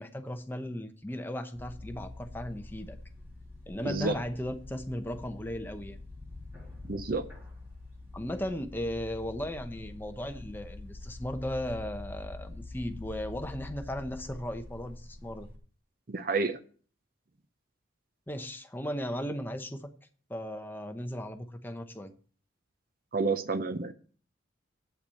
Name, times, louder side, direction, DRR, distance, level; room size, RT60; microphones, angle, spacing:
voice 1, 0.0-3.0 3.7-6.0 8.1-15.5 18.3-19.9 20.3-22.1, equal, 10° left, 0.8 m, -36 dB
sound 1, 1.5-15.6, left 2 dB, 10° right, 2.5 m, -45 dB
voice 2, 6.9-7.2 16.1-16.6 23.1-23.9, right 3 dB, 45° right, 0.6 m, -29 dB
8.5 x 5.8 x 7.6 m
head